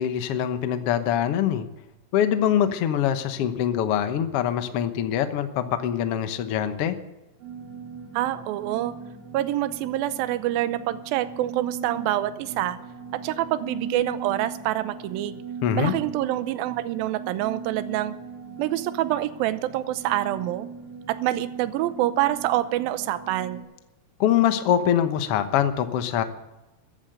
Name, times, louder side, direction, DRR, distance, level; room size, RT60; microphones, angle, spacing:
voice 1, 0.0-1.7 2.1-7.0 15.6-15.9 24.2-26.2, left 10 dB, 80° left, 9 dB, 1.3 m, -23 dB
sound 1, 7.4-23.6, right 5 dB, 40° right, 3.1 m, -39 dB
voice 2, 8.1-8.9 9.3-12.8 13.2-15.4 15.7-18.1 18.6-20.7 21.1-23.6, right 14 dB, 80° right, 12 dB, 2.5 m, -26 dB
14.0 x 10.5 x 7.9 m, 0.99 s
omnidirectional pair, 4.3 m